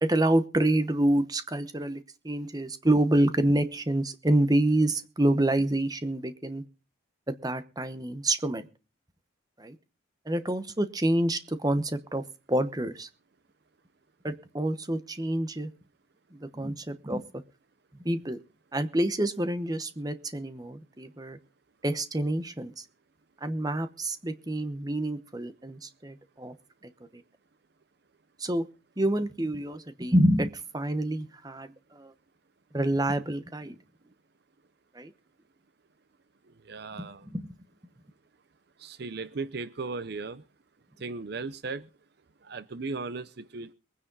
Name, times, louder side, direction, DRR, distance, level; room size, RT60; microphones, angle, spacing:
voice 1, 0.0-6.6 7.4-8.6 9.6-9.8 10.2-12.2 12.5-13.1 14.2-15.7 16.3-17.2 18.0-18.4 18.7-21.4 21.8-22.8 23.4-26.5 27.1-27.2 28.4-28.6 29.0-32.1 32.7-33.8 34.9-35.1 37.0-37.4, right 1 dB, 20° right, 10 dB, 1.0 m, -27 dB
voice 2, 36.6-37.3 38.8-40.4 41.0-41.9 42.4-43.7, right 3 dB, 50° right, 14 dB, 0.6 m, -36 dB
22.0 x 9.9 x 4.0 m, 0.33 s
head